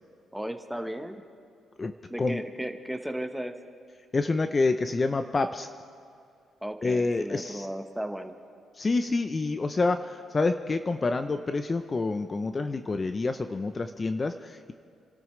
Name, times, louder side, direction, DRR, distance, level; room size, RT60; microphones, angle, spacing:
voice 1, 0.3-1.2 2.1-3.5 6.6-8.4, right 1 dB, ahead, 6 dB, 1.0 m, -35 dB
voice 2, 4.1-5.7 6.8-7.7 8.8-14.7, left 3 dB, 30° left, 8 dB, 0.6 m, -27 dB
29.5 x 12.5 x 3.2 m, 2.3 s
cardioid pair, 90°, 0 cm